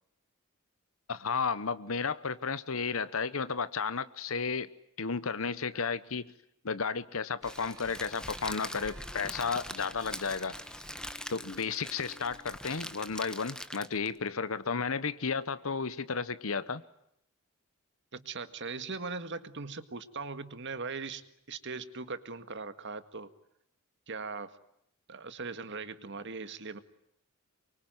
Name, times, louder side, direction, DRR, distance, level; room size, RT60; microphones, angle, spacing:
voice 1, 1.1-4.7 5.0-6.3 6.6-10.5 11.3-16.8, left 5 dB, 70° left, 14 dB, 1.0 m, -33 dB
Crackle, 7.4-14.2, left 1 dB, 5° left, 1.3 m, -43 dB
sound 1, 7.4-12.5, right 2 dB, 15° right, 3.2 m, -56 dB
voice 2, 18.1-21.2 21.5-23.3 24.1-24.6 25.1-26.8, right 4 dB, 55° right, 11 dB, 1.9 m, -39 dB
25.0 x 24.0 x 9.3 m, 0.77 s
head